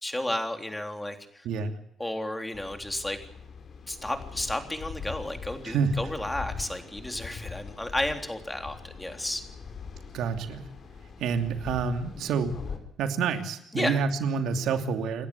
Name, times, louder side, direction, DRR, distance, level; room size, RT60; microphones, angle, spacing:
voice 1, 0.0-1.5 2.0-3.2 3.9-9.4 13.7-14.0, left 1 dB, 10° left, 6 dB, 3.5 m, -32 dB
sound 1, 2.5-12.8, left 6 dB, 55° left, 4.5 m, -42 dB
voice 2, 5.6-6.0 10.1-10.6 11.2-12.6 13.0-15.3, right 5 dB, 80° right, 6 dB, 2.7 m, -28 dB
28.5 x 11.5 x 8.4 m, 0.76 s
cardioid pair, 90°, 0 cm